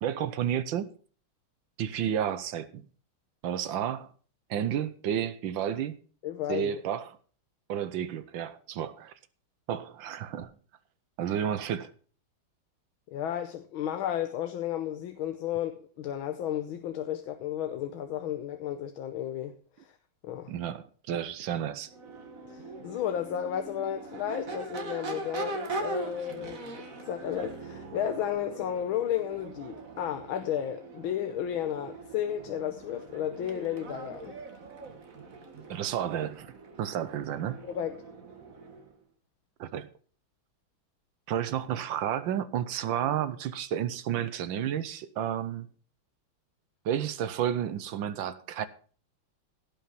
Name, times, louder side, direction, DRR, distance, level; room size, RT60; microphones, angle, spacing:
voice 1, 0.0-0.9 1.8-2.8 3.4-4.1 4.5-5.9 6.5-7.2 7.7-9.1 9.7-10.5 11.2-11.9 20.5-21.9 35.7-36.5 36.8-37.6 39.6-39.9 41.3-45.7 46.8-48.7, right 9 dB, 70° right, 1.5 m, -31 dB
voice 2, 6.2-6.8 13.1-19.5 19.8-19.9 20.2-20.5 22.4-34.4 37.6-38.0, left 10 dB, 80° left, 1.6 m, -33 dB
Crowd / Race car auto racing / Accelerating revving vroom, 21.8-38.9, right 3 dB, 45° right, 1.9 m, -41 dB
16.5 x 5.6 x 5.9 m
omnidirectional pair, 2.3 m